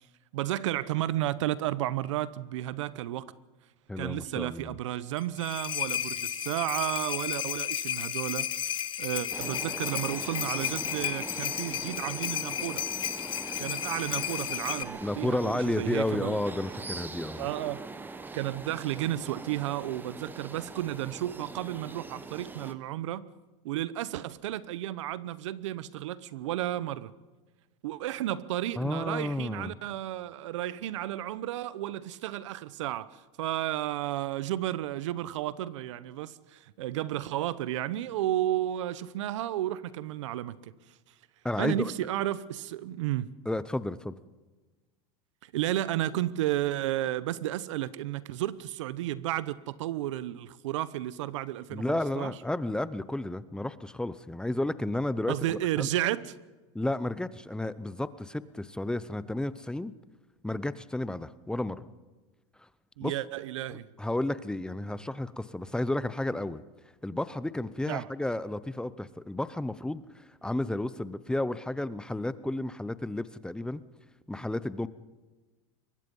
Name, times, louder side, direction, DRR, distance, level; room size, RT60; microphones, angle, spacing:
voice 1, 0.3-3.3 4.0-12.8 13.6-16.4 17.4-17.9 18.3-23.3 23.6-27.1 27.8-40.7 41.6-43.3 45.5-52.3 55.3-56.3 63.0-63.9 67.9-68.1, right 13 dB, 85° right, 0.9 m, -32 dB
voice 2, 3.9-4.8 15.0-17.4 28.8-29.7 41.4-41.9 43.4-44.1 51.7-55.9 56.7-59.9 60.4-61.9 63.0-63.1 64.0-66.6 67.0-73.8 74.3-74.9, left 1 dB, 5° left, 0.7 m, -32 dB
sound 1, 5.2-14.8, left 10 dB, 30° left, 1.2 m, -33 dB
sound 2, 9.3-22.7, right 3 dB, 10° right, 1.2 m, -42 dB
23.0 x 20.5 x 5.5 m
supercardioid pair, 120°, 15 cm